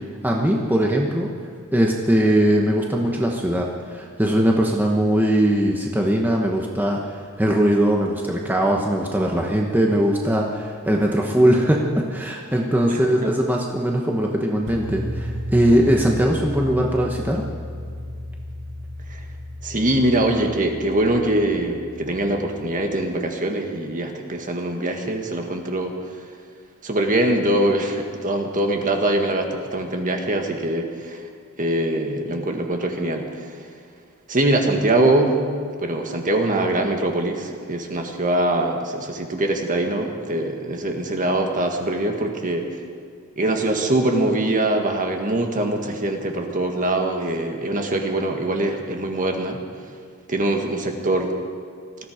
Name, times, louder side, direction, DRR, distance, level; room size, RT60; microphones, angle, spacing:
voice 1, 0.2-1.3 1.7-17.4, right 1 dB, 10° right, 0 dB, 1.1 m, -20 dB
sound 1, 14.7-22.8, equal, 60° right, 1.3 m, -33 dB
voice 2, 19.6-25.9 26.8-31.2 31.6-33.3 34.3-35.4 35.8-42.7 43.4-49.6 50.3-51.3, right 1 dB, 35° right, 3 dB, 1.7 m, -23 dB
20.0 x 14.0 x 5.1 m, 2.1 s
head